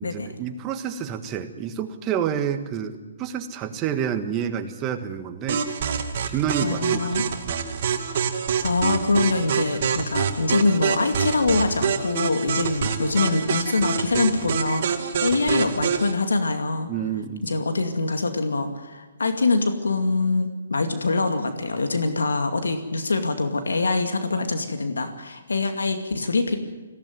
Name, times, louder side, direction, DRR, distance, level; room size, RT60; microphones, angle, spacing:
voice 1, 0.0-5.7 6.3-7.2 16.9-17.5, right 8 dB, 20° right, 8 dB, 1.5 m, -28 dB
sound 1, 5.5-16.1, right 7 dB, 50° right, 2.4 m, -26 dB
voice 2, 6.6-7.2 8.0-8.3 8.6-16.9 17.4-26.6, left 3 dB, 90° left, 6 dB, 2.3 m, -24 dB
19.0 x 16.5 x 9.5 m, 1.2 s
hypercardioid pair, 150°, 0 cm